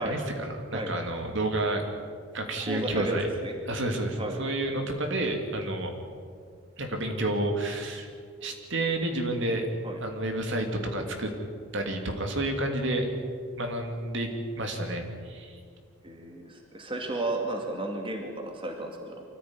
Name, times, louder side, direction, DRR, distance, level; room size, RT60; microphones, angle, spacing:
voice 1, 0.0-1.8 2.3-3.3 3.6-5.9 6.8-8.1 8.4-9.7 10.0-11.3 11.7-13.1 13.6-14.3 14.6-15.6, right 1 dB, 60° right, 3 dB, 2.8 m, -30 dB
voice 2, 2.7-3.2 3.4-3.6 4.2-4.4 9.8-10.0 16.0-19.2, right 1 dB, 25° right, 2 dB, 2.4 m, -33 dB
25.0 x 14.5 x 9.9 m, 2.1 s
head